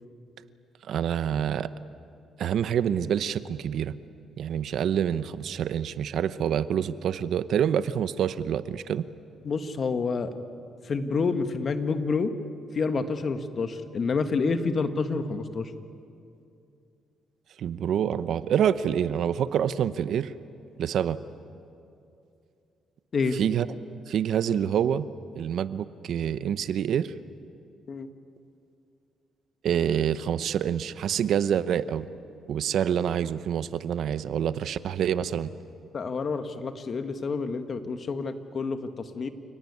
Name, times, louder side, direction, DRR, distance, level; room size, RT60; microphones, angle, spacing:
voice 1, 0.9-1.7 2.4-3.9 4.4-9.1 17.6-20.3 20.8-21.2 23.3-23.7 24.1-25.1 25.3-27.1 29.6-32.1 32.5-35.5, right 9 dB, 70° right, 14 dB, 0.8 m, -27 dB
voice 2, 9.4-10.3 10.8-12.3 12.7-15.7 23.1-23.4 27.9-28.1 35.9-39.3, left 4 dB, 45° left, 8 dB, 1.7 m, -28 dB
28.5 x 18.0 x 9.7 m, 2.6 s
cardioid pair, 90°, 0 cm